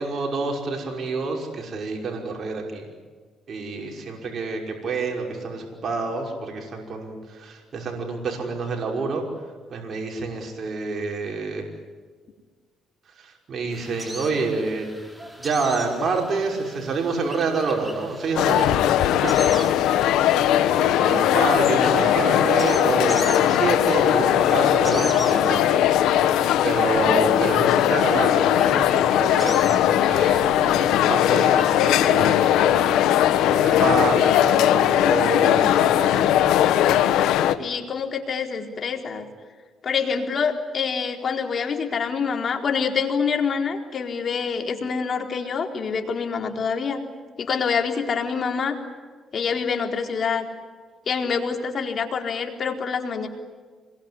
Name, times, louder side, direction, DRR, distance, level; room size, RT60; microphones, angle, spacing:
voice 1, 0.0-2.8 3.5-9.2 9.7-11.6 13.2-14.8 15.4-18.8 19.2-26.3 26.6-36.3, right 4 dB, 50° right, 1 dB, 5.7 m, -28 dB
sound 1, 13.7-31.9, equal, 10° right, 5.0 m, -41 dB
sound 2, 18.4-37.6, left 11 dB, 90° left, 1.3 m, -19 dB
voice 2, 37.6-39.3 39.8-47.0 47.4-48.8 49.3-50.5 51.1-53.3, left 6 dB, 50° left, 4 dB, 4.2 m, -26 dB
27.0 x 22.0 x 9.9 m, 1.5 s
cardioid pair, 90°, 0 cm